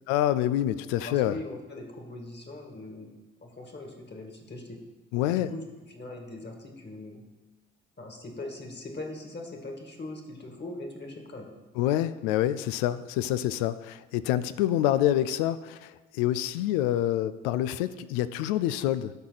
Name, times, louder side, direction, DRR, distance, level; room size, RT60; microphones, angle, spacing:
voice 1, 0.1-1.4 5.1-5.5 11.8-19.1, left 12 dB, 80° left, 15 dB, 0.5 m, -27 dB
voice 2, 1.0-3.1 3.4-4.8 5.2-5.6 5.9-7.2 8.0-11.5, left 2 dB, 30° left, 2 dB, 2.0 m, -41 dB
12.5 x 4.4 x 4.0 m, 1.2 s
hypercardioid pair, 50°, 33 cm